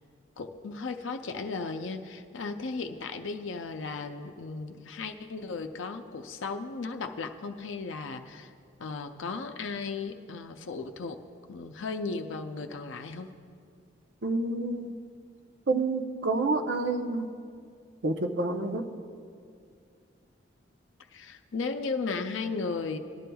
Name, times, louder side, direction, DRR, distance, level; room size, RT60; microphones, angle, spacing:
voice 1, 0.4-8.5 8.8-11.2 11.5-13.3 21.1-23.0, left 4 dB, 85° left, 5 dB, 0.5 m, -35 dB
voice 2, 14.2-15.0 15.7-17.3 18.0-18.8, right 3 dB, 70° right, 6 dB, 0.7 m, -28 dB
18.5 x 11.0 x 2.3 m, 2.3 s
head